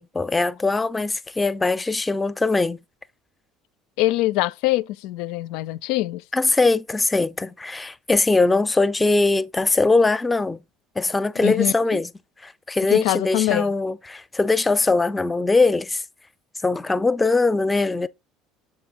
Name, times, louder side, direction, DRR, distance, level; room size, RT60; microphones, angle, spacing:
voice 1, 0.0-2.8 6.3-10.6 11.0-12.1 12.4-16.0 16.6-18.1, left 3 dB, 15° left, 0.6 m, -21 dB
voice 2, 4.0-6.2 11.4-12.0 12.9-13.7, left 17 dB, 65° left, 0.4 m, -23 dB
7.5 x 4.1 x 3.7 m
hypercardioid pair, 65°, 0 cm